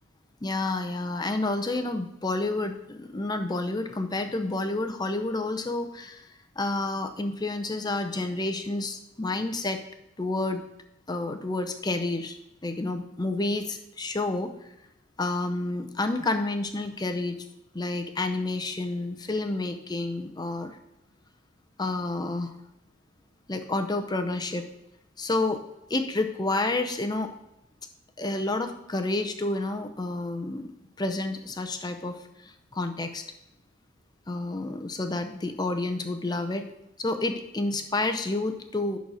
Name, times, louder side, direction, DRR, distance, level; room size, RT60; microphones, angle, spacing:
voice 1, 0.4-9.8 10.2-10.6 11.1-12.4 12.6-14.7 15.2-17.4 17.7-20.8 21.8-22.5 23.5-24.6 25.2-25.6 25.9-27.3 28.2-30.7 31.0-33.2 34.3-36.6 37.0-39.0, left 2 dB, 20° left, 7 dB, 0.6 m, -29 dB
11.0 x 4.1 x 6.3 m, 0.89 s
head